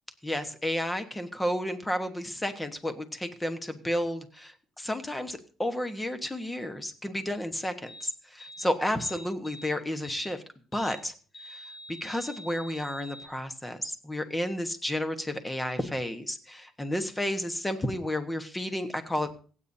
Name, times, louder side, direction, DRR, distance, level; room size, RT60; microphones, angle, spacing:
voice 1, 0.2-10.4 10.7-11.1 11.4-11.7 12.0-19.3, left 1 dB, 10° left, 8 dB, 1.2 m, -32 dB
sound 1, 7.9-8.1 8.4-8.7 9.0-9.7 10.0-10.3 10.7-11.0 11.3-13.3, equal, 40° left, 3.0 m, -46 dB
26.0 x 8.7 x 2.7 m, 0.40 s
cardioid pair, 165°, 0 cm